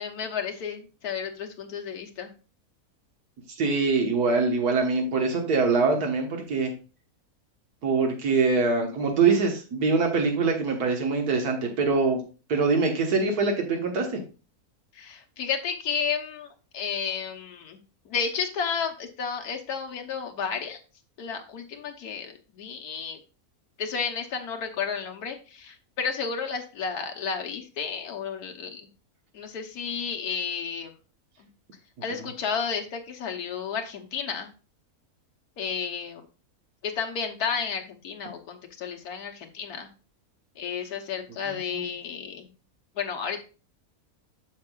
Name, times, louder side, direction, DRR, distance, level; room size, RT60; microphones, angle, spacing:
voice 1, 0.0-2.3 14.9-17.8 18.0-20.8 21.2-23.2 23.8-28.9 29.3-30.9 31.4-31.5 32.0-34.5 35.6-36.2 36.8-39.9 40.6-42.5 42.9-43.4, left 6 dB, 85° left, 4 dB, 1.6 m, -32 dB
voice 2, 3.6-6.7 7.8-12.2 12.5-14.2 41.5-41.8, right 4 dB, 85° right, 2 dB, 1.9 m, -24 dB
9.4 x 6.7 x 2.4 m, 0.33 s
omnidirectional pair, 1.6 m